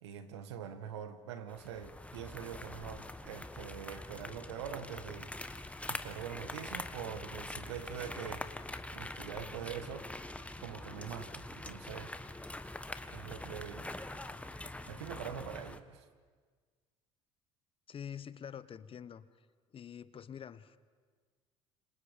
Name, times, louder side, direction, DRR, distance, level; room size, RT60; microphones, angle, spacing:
voice 1, 0.0-8.4 8.9-10.1 10.6-12.1 13.1-13.9 14.9-16.0, right 9 dB, 90° right, 1.6 m, -44 dB
sound 1, 1.5-15.8, left 2 dB, 10° left, 1.4 m, -44 dB
voice 2, 17.9-19.3 19.7-20.8, left 8 dB, 40° left, 1.1 m, -46 dB
27.5 x 26.0 x 5.2 m
hypercardioid pair, 70°, 14 cm